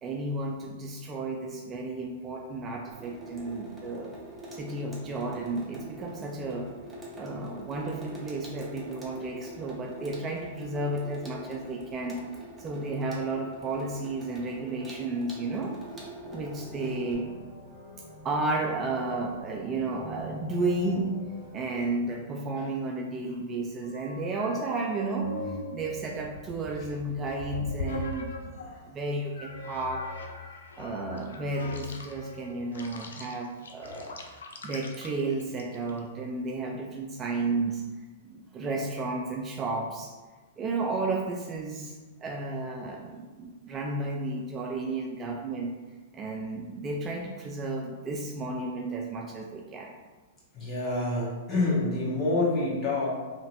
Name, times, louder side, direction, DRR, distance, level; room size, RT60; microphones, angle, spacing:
voice 1, 0.0-4.2 4.5-6.7 7.1-12.2 12.6-15.8 16.3-17.3 18.2-21.2 21.5-25.3 25.7-30.1 30.8-34.2 34.6-37.8 38.2-40.1 40.6-45.7 46.1-50.0, right 2 dB, 25° right, 0 dB, 0.3 m, -32 dB
Water tap faucet / Sink (filling or washing), 2.9-17.1, equal, 10° right, 0.7 m, -45 dB
mega sample, 16.2-22.0, equal, 45° right, 0.9 m, -44 dB
sound 1, 23.8-28.8 29.3-36.0, left 3 dB, 80° left, 0.4 m, -40 dB
voice 2, 50.5-53.1, left 2 dB, 25° left, -6 dB, 1.2 m, -27 dB
2.9 x 2.8 x 2.6 m, 1.3 s
hypercardioid pair, 120°, 0 cm